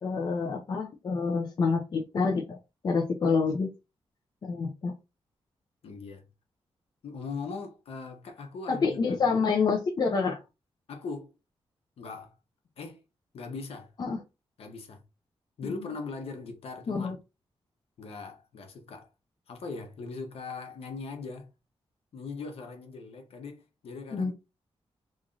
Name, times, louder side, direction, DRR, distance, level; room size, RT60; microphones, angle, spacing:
voice 1, 0.0-2.6 2.8-3.7 4.4-4.9 8.7-10.4 14.0-14.2 15.6-15.9 16.9-17.2 24.1-24.3, left 4 dB, 45° left, 0.5 m, -27 dB
voice 2, 5.8-6.3 7.0-9.0 10.9-11.3 12.0-12.3 12.8-13.0 13.3-13.9 14.6-15.0 15.6-17.1 18.0-19.1 19.5-21.5 22.1-24.3, left 4 dB, 75° left, 0.9 m, -40 dB
3.0 x 2.6 x 3.7 m
wide cardioid pair, 170°, 10 cm